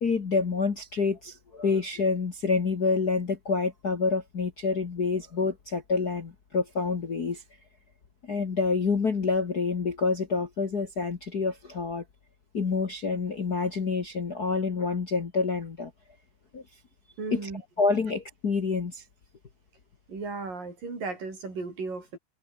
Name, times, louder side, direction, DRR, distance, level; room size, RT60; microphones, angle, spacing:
voice 1, 0.0-7.4 8.3-12.0 12.5-15.9 16.5-16.6 17.3-17.5 17.8-19.0, left 4 dB, 40° left, 1.6 m, -27 dB
voice 2, 17.2-17.6 20.1-22.2, right 3 dB, 75° right, 9.4 m, -35 dB
open air
omnidirectional pair, 3.9 m